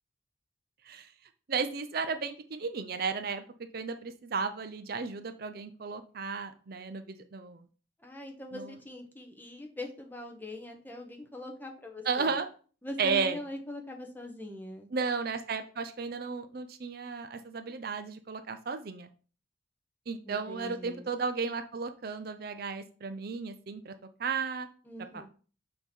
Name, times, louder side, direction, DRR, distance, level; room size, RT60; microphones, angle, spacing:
voice 1, 1.5-3.4 3.7-7.6 8.5-8.7 12.1-12.5 13.0-13.4 14.9-19.1 20.1-23.9 24.2-24.7, right 5 dB, 50° right, 9 dB, 0.5 m, -34 dB
voice 2, 8.0-12.4 12.8-14.9 20.2-21.1 24.8-25.3, left 1 dB, 10° left, 2 dB, 0.8 m, -42 dB
6.3 x 2.9 x 5.2 m, 0.39 s
head